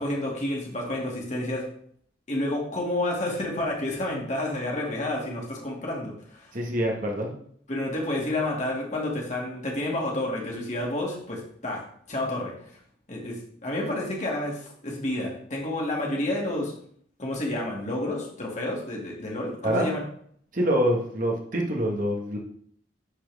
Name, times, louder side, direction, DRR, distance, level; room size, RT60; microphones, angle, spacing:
voice 1, 0.0-1.6 2.3-6.5 7.7-11.8 12.1-12.5 13.1-13.4 13.6-16.7 17.2-20.0, left 1 dB, 40° left, -2 dB, 2.2 m, -30 dB
voice 2, 6.5-7.3 19.6-19.9 20.5-22.4, equal, 45° right, 0 dB, 1.4 m, -25 dB
11.5 x 4.4 x 3.5 m, 0.62 s
head